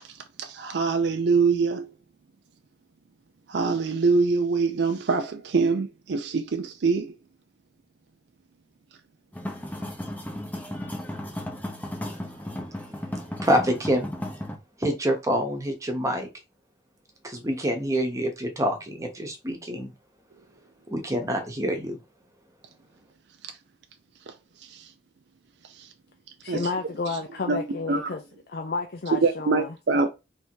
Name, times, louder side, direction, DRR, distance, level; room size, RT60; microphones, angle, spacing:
voice 1, 0.4-1.9 3.5-7.1 24.3-24.4 24.6-24.9 25.7-25.9 26.5-26.6 27.5-27.6 27.9-28.1 29.1-30.1, right 4 dB, 70° right, 0.5 m, -24 dB
sound 1, 9.3-14.6, left 1 dB, 10° left, 0.7 m, -35 dB
voice 2, 13.3-14.1 14.8-16.3 17.2-19.9 20.9-22.0, equal, 20° right, 0.9 m, -26 dB
voice 3, 26.4-28.2 28.5-29.8, left 4 dB, 60° left, 0.4 m, -31 dB
3.3 x 2.7 x 4.5 m
head